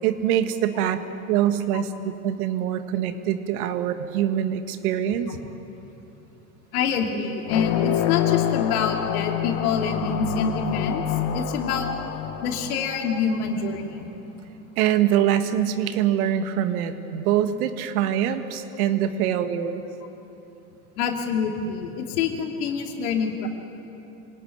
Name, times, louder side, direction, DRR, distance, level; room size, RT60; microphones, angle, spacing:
voice 1, 0.0-1.0 1.3-5.4 14.8-19.8, right 10 dB, 75° right, 9 dB, 1.8 m, -24 dB
voice 2, 6.7-11.0 11.3-11.9 12.4-14.1 21.0-23.5, left 6 dB, 80° left, 2 dB, 3.1 m, -26 dB
sound 1, 7.4-13.6, left 9 dB, 60° left, 2.0 m, -27 dB
26.5 x 18.0 x 9.5 m, 2.9 s
hypercardioid pair, 95°, 44 cm